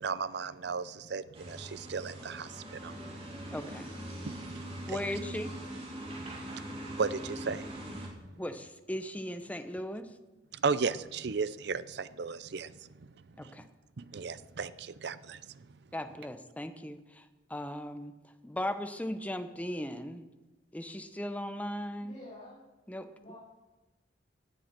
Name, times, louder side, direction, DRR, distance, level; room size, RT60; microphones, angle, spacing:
voice 1, 0.0-3.5 4.2-5.0 6.1-8.0 10.5-12.9 13.4-13.5 14.0-15.7, right 5 dB, 65° right, 16 dB, 0.6 m, -36 dB
sound 1, 1.3-8.1, right 1 dB, 30° right, 2.9 m, -42 dB
voice 2, 3.5-3.9 4.9-5.5 8.4-10.1 13.4-13.6 15.9-18.1 18.4-20.2 20.7-22.2 22.9-23.1, left 1 dB, 10° left, 9 dB, 0.8 m, -37 dB
voice 3, 22.0-22.6 23.1-23.4, left 1 dB, 40° left, -9 dB, 4.7 m, -49 dB
16.0 x 9.3 x 6.0 m, 1.1 s
head